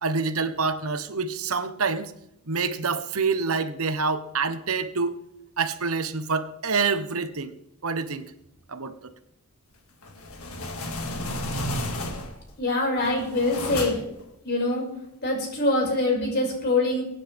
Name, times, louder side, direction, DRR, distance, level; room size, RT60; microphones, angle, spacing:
voice 1, 0.0-2.1 2.5-5.2 5.6-7.5 7.8-8.3 8.7-9.1 11.5-11.6, right 4 dB, 90° right, 10 dB, 1.2 m, -27 dB
sound 1, 10.0-12.5 13.0-14.2, left 1 dB, 80° left, 2.3 m, -32 dB
voice 2, 12.6-14.0 14.4-14.8 15.2-17.0, left 2 dB, 50° left, -1 dB, 6.1 m, -24 dB
22.5 x 9.9 x 3.6 m, 0.82 s
head